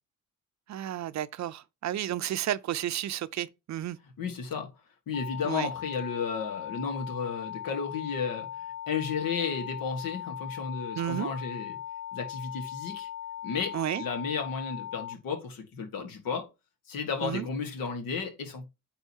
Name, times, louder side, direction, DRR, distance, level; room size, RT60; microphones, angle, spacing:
voice 1, 0.7-4.0 5.4-5.7 11.0-11.3 13.7-14.0 17.2-17.5, right 12 dB, 55° right, 0.5 m, -32 dB
voice 2, 4.2-4.7 5.1-8.5 8.9-11.8 12.1-13.1 13.4-16.5 16.9-18.7, left 5 dB, 80° left, 1.6 m, -33 dB
sound 1, 5.1-15.1, left 9 dB, 50° left, 0.5 m, -39 dB
9.0 x 3.9 x 2.8 m
cardioid pair, 85°, 34 cm